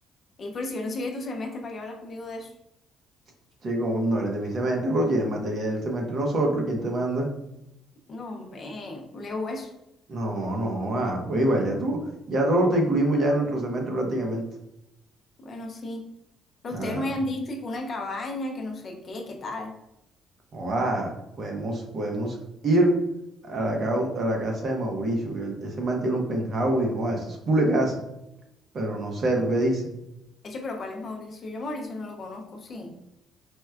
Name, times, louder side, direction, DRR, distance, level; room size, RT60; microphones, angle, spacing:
voice 1, 0.4-2.5 8.1-9.7 15.4-16.1 16.6-19.7 30.4-32.9, left 2 dB, 40° left, 2 dB, 0.5 m, -34 dB
voice 2, 3.6-7.3 10.1-12.0 12.3-14.4 16.7-17.1 20.5-21.1 21.4-22.4 22.6-22.9 23.4-28.0 28.7-29.8, right 1 dB, 45° right, 1 dB, 0.7 m, -25 dB
4.3 x 2.2 x 2.3 m, 0.87 s
cardioid pair, 125°, 0 cm